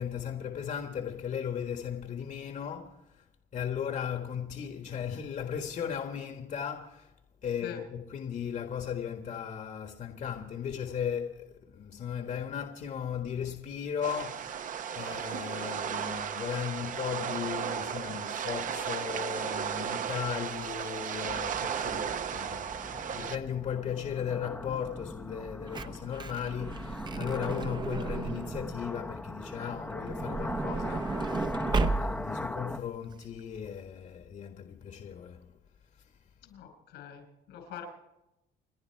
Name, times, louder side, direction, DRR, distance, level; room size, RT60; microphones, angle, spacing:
voice 1, 0.0-3.3 3.5-7.1 7.4-14.7 14.9-35.6 36.0-36.1, left 8 dB, 45° left, 1.6 m, -36 dB
sound 1, 14.0-23.4, right 8 dB, 50° right, 1.0 m, -35 dB
sound 2, 21.3-32.8, left 1 dB, 10° left, 0.9 m, -40 dB
Truck / Door, 25.3-28.9 29.9-32.4 33.1-33.2 33.4-33.6, right 3 dB, 25° right, 0.9 m, -33 dB
voice 2, 36.4-37.9, left 9 dB, 85° left, 4.9 m, -44 dB
30.0 x 10.5 x 4.6 m
cardioid pair, 110°, 17 cm